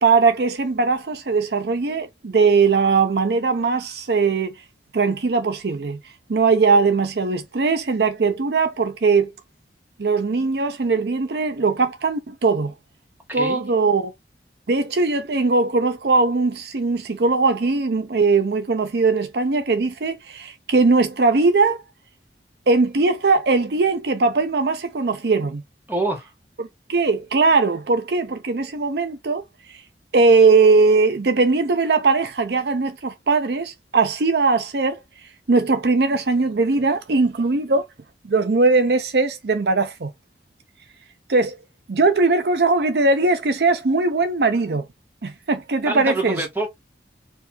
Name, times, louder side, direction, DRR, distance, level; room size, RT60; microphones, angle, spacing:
voice 1, 0.0-4.5 4.9-6.0 6.3-9.3 10.0-12.7 13.3-14.1 14.7-21.8 22.7-25.6 26.6-29.4 29.7-29.8 30.1-35.0 35.5-37.8 38.2-40.1 41.3-41.6 41.9-44.9 45.2-46.4, right 4 dB, 60° right, 0.6 m, -20 dB
voice 2, 13.3-13.6 25.9-26.2 45.9-46.7, right 2 dB, 10° right, 1.4 m, -25 dB
4.5 x 2.7 x 4.1 m
head